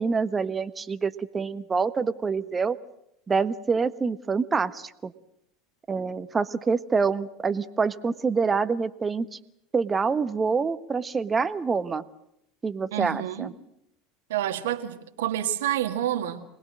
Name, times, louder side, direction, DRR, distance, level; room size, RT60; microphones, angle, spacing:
voice 1, 0.0-2.8 3.3-5.1 5.9-9.4 9.7-12.0 12.6-13.5, right 5 dB, 25° right, 14 dB, 1.3 m, -26 dB
voice 2, 12.9-13.5 14.3-16.4, right 11 dB, 70° right, 8 dB, 2.0 m, -28 dB
26.0 x 20.5 x 7.7 m, 0.78 s
hypercardioid pair, 80°, 0 cm